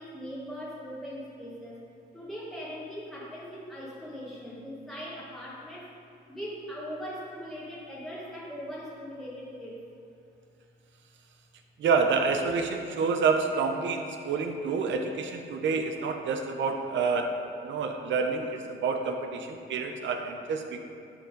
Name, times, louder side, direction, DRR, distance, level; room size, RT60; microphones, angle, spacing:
voice 1, 0.0-1.8 2.1-5.8 6.3-9.8, equal, ahead, -7 dB, 1.5 m, -40 dB
voice 2, 11.8-17.3 17.6-20.8, right 5 dB, 70° right, 5 dB, 0.8 m, -28 dB
12.0 x 4.4 x 4.0 m, 2.6 s
cardioid pair, 90°, 20 cm